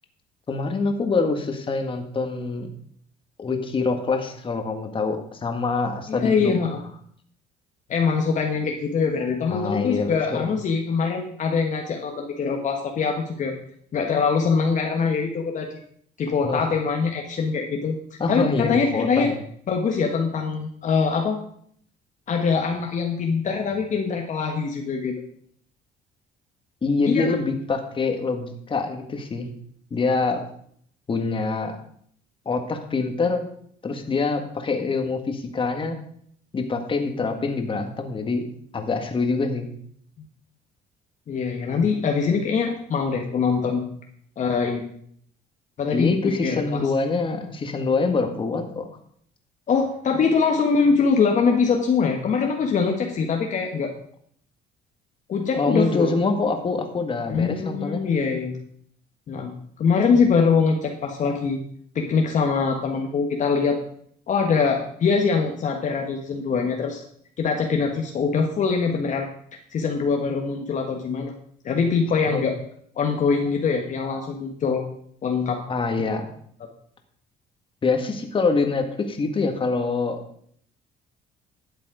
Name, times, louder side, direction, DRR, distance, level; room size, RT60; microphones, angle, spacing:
voice 1, 0.5-2.7 3.4-6.5 9.5-10.5 16.4-16.7 18.2-19.4 26.8-29.5 29.9-30.4 31.1-31.8 32.5-33.5 33.8-36.0 36.5-38.4 38.7-39.7 45.9-48.9 55.5-58.0 72.3-72.4 75.7-76.3 77.8-80.2, left 4 dB, 30° left, 5 dB, 1.7 m, -25 dB
voice 2, 6.1-6.8 7.9-13.5 13.9-15.8 16.2-18.0 18.3-19.3 19.7-21.4 22.3-25.1 27.1-27.3 41.3-43.8 44.4-44.8 45.8-46.1 46.4-46.8 49.7-53.9 55.3-56.1 57.3-58.5 59.3-59.5 59.8-61.6 61.9-63.8 64.3-67.0 67.4-69.3 69.7-71.3 71.6-72.5 73.0-74.8 75.2-75.6, left 5 dB, 50° left, 2 dB, 1.4 m, -23 dB
12.0 x 7.5 x 5.0 m, 0.63 s
cardioid pair, 110°, 17 cm